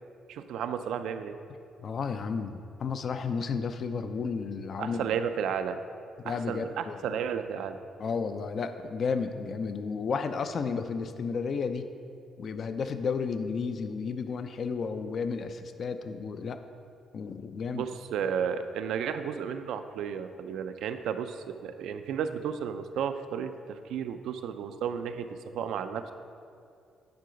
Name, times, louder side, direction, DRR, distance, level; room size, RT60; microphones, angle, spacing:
voice 1, 0.3-1.4 4.8-5.8 6.2-7.8 17.7-25.3 25.5-26.1, right 7 dB, 80° right, 9 dB, 0.4 m, -33 dB
voice 2, 1.8-5.1 6.2-7.1 8.0-11.9 12.4-16.6 17.1-17.8, left 5 dB, 55° left, 9 dB, 0.4 m, -32 dB
9.4 x 3.8 x 5.1 m, 2.5 s
cardioid pair, 90°, 0 cm